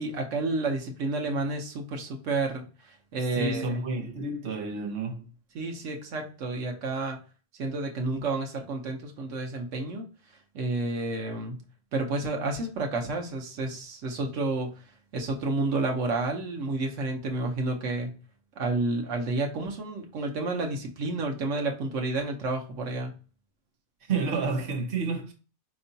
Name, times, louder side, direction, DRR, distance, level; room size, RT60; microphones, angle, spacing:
voice 1, 0.0-3.7 5.5-7.2 7.6-10.0 10.5-11.6 11.9-14.8 15.1-18.1 18.6-23.1, right 2 dB, 80° right, 1.1 m, -30 dB
voice 2, 3.4-5.3 24.1-25.3, right 4 dB, 50° right, 0.9 m, -30 dB
4.4 x 3.0 x 2.7 m
omnidirectional pair, 1.3 m